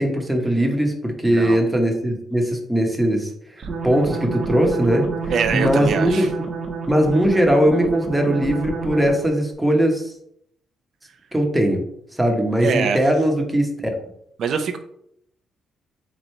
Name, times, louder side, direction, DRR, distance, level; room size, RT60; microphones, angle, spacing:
voice 1, 0.0-3.3 3.8-5.1 5.5-6.3 6.9-10.1 11.3-11.8 12.1-13.7, equal, 10° right, 2 dB, 1.0 m, -19 dB
sound 1, 3.6-9.4, right 4 dB, 45° right, 1.1 m, -29 dB
voice 2, 5.3-6.3 12.6-13.0 14.4-14.8, right 6 dB, 65° right, 7 dB, 0.6 m, -24 dB
3.8 x 3.2 x 4.3 m, 0.73 s
cardioid pair, 90°, 0 cm